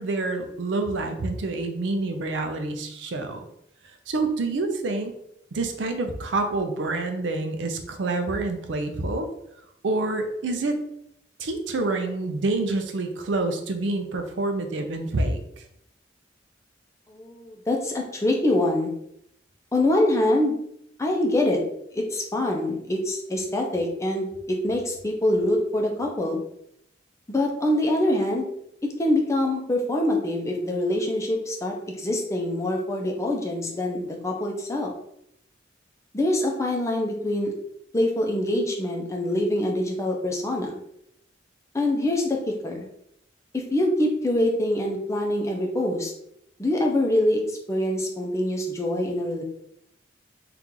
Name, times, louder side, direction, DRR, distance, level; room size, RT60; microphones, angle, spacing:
voice 1, 0.0-3.4 4.1-5.1 5.5-9.3 9.8-10.8 11.4-15.4, right 2 dB, 85° right, 6 dB, 0.5 m, -27 dB
voice 2, 17.1-18.9 19.7-20.6 21.0-21.6 21.9-26.4 27.3-28.5 29.0-34.9 36.1-37.5 37.9-40.8 41.7-42.9 43.5-46.1 46.6-49.4, left 1 dB, 15° left, 1 dB, 0.5 m, -24 dB
2.8 x 2.4 x 3.7 m, 0.75 s
head